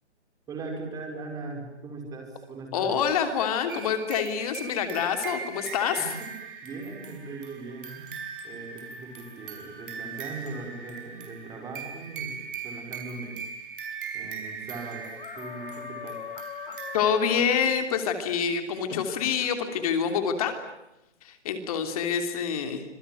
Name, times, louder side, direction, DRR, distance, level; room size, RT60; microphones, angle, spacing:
voice 1, 0.5-3.0 6.0-6.3 6.6-13.4 14.1-16.3, right 3 dB, 10° right, 2 dB, 5.2 m, -39 dB
voice 2, 2.7-6.1 16.9-20.5 21.2-22.8, left 7 dB, 30° left, 7 dB, 3.1 m, -26 dB
sound 1, 3.7-17.0, right 6 dB, 45° right, 5.8 m, -40 dB
sound 2, 15.2-17.7 18.9-19.5 20.1-20.3, left 7 dB, 50° left, 2.2 m, -40 dB
26.5 x 22.0 x 9.3 m, 0.88 s
hypercardioid pair, 160°, 35 cm